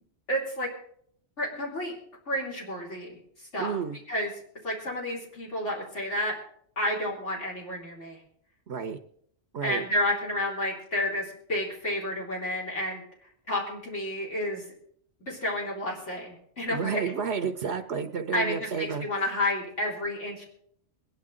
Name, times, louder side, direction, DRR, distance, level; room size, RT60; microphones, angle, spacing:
voice 1, 0.3-0.7 1.4-1.9 2.3-3.2 3.5-3.8 4.1-4.3 4.6-6.3 6.8-8.2 9.6-13.0 13.5-14.6 15.3-17.0 18.3-20.4, left 1 dB, 80° left, -4 dB, 3.3 m, -30 dB
voice 2, 3.6-4.0 8.7-9.0 9.5-9.8 16.7-19.1, right 6 dB, 65° right, 8 dB, 1.0 m, -31 dB
22.5 x 10.5 x 3.8 m, 0.65 s
omnidirectional pair, 1.2 m